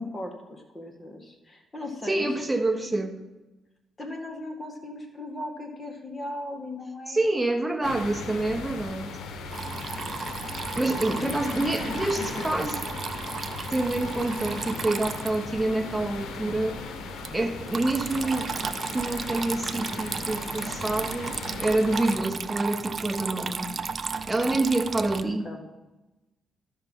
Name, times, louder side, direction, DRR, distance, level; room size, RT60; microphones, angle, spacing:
voice 1, 0.0-2.5 2.9-3.0 4.0-7.9 10.5-12.6 25.2-25.6, left 1 dB, 25° left, 1.7 m, -38 dB
voice 2, 2.1-3.1 7.1-9.2 10.8-12.8 13.7-16.8 17.3-18.5 18.8-23.7 24.3-25.5, right 2 dB, 10° right, 1.1 m, -27 dB
sound 1, 7.8-22.2, left 4 dB, 75° left, 1.0 m, -38 dB
Water tap faucet / Trickle dribble, 9.5-25.2, right 5 dB, 40° right, 0.5 m, -35 dB
12.5 x 5.6 x 5.4 m
cardioid pair, 90°, 0 cm